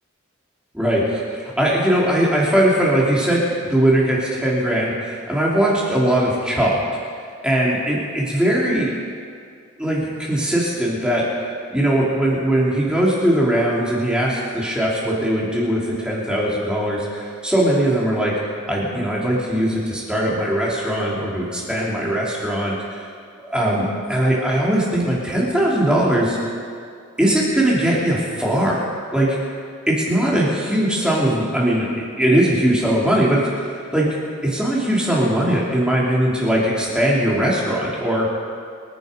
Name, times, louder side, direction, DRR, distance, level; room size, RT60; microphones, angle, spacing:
voice 1, 0.7-6.8 7.4-8.9 9.8-11.2 11.7-18.3 18.7-22.7 23.5-26.4 27.2-28.8 29.1-29.4 29.9-33.4 33.7-34.1 34.4-38.3, right 1 dB, 5° right, -5 dB, 3.1 m, -20 dB
26.5 x 9.2 x 5.2 m, 2.2 s
head